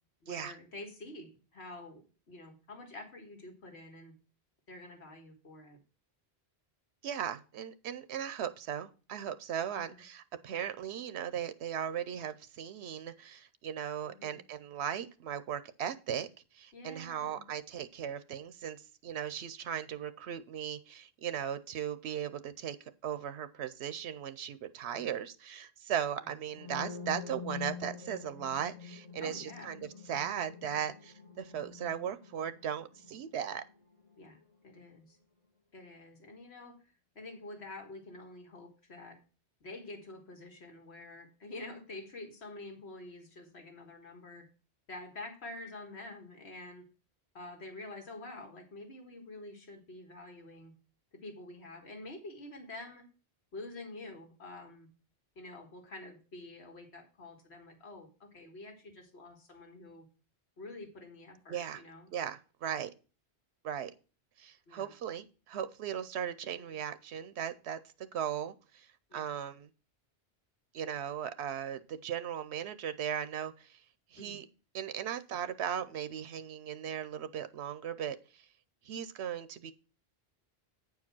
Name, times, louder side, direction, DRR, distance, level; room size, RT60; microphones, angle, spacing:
voice 1, 0.2-4.1 4.7-5.8 9.7-10.0 14.0-14.4 16.7-17.5 24.9-25.1 26.2-26.3 29.2-29.7 34.2-35.2 35.7-39.2 39.6-44.5 44.9-46.9 47.3-50.7 51.2-53.0 53.5-54.9 55.4-60.1 60.6-62.1 64.7-64.9 66.5-66.8 69.1-69.3 74.2-74.4, left 2 dB, 80° left, 3 dB, 2.0 m, -48 dB
voice 2, 7.0-16.3 16.5-18.8 19.0-22.8 23.0-29.8 30.1-33.6 61.5-61.8 62.1-62.9 63.6-63.9 64.4-67.8 68.1-69.7 70.7-73.8 74.1-74.5 74.7-78.4 78.8-79.7, right 9 dB, 85° right, 13 dB, 0.9 m, -37 dB
sound 1, 26.5-34.3, left 6 dB, 35° left, 1.0 m, -46 dB
9.1 x 4.8 x 6.0 m, 0.34 s
omnidirectional pair, 1.1 m